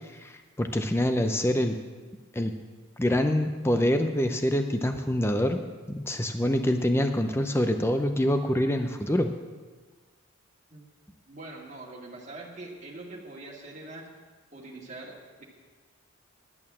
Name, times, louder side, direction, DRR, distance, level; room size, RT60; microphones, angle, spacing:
voice 1, 0.1-1.8 2.3-2.5 3.0-5.6 5.9-9.3, left 1 dB, 10° left, 6 dB, 0.6 m, -25 dB
voice 2, 11.3-14.1 14.5-15.4, right 2 dB, 35° right, -2 dB, 2.0 m, -43 dB
11.0 x 8.8 x 7.3 m, 1.3 s
head